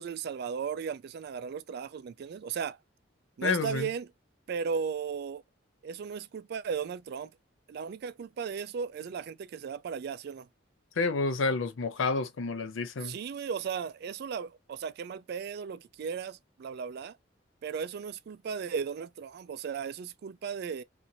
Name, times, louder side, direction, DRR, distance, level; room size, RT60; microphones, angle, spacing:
voice 1, 0.0-2.8 3.4-4.1 4.5-5.4 5.8-7.4 7.7-10.5 13.0-17.2 17.6-20.8, right 6 dB, 55° right, 0.3 m, -36 dB
voice 2, 3.4-3.9 11.0-13.2, left 4 dB, 85° left, 0.5 m, -29 dB
2.7 x 2.5 x 2.6 m
head